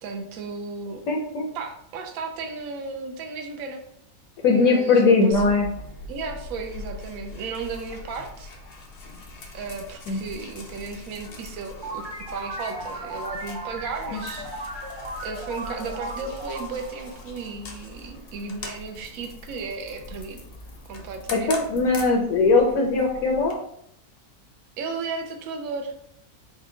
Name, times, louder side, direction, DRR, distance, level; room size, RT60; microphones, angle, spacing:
voice 1, 0.0-1.0 1.5-3.8 4.5-5.6 6.1-8.5 9.5-14.7 15.2-20.4 20.8-21.5 24.8-25.9, right 4 dB, 70° right, 4 dB, 1.0 m, -35 dB
voice 2, 1.1-1.5 4.4-5.7 10.1-10.2 14.1-14.2 21.3-23.6, left 3 dB, 70° left, -1 dB, 1.1 m, -20 dB
sound 1, 5.3-23.5, left 2 dB, 50° left, 0.7 m, -42 dB
sound 2, 11.8-18.1, right 1 dB, 30° right, 0.4 m, -36 dB
4.4 x 2.2 x 3.7 m, 0.71 s
omnidirectional pair, 1.6 m